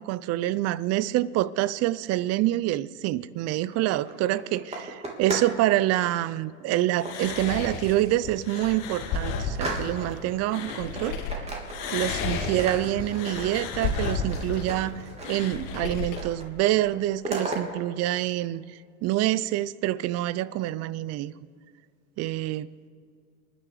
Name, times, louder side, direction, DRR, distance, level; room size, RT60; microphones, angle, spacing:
voice 1, 0.0-11.2 11.9-18.6 19.0-21.3 22.2-22.7, right 15 dB, 40° right, 0.6 m, -26 dB
sound 1, 3.6-5.6 5.9-6.2 7.0-7.9 8.3-8.4 8.7-10.3 10.7-12.2 12.4-15.6 15.9-16.5 16.7-17.6, right 2 dB, 15° right, 3.0 m, -36 dB
sound 2, 7.0-11.4 11.7-16.2, left 4 dB, 50° left, 2.2 m, -32 dB
28.5 x 10.0 x 5.0 m
hypercardioid pair, 110°, 40 cm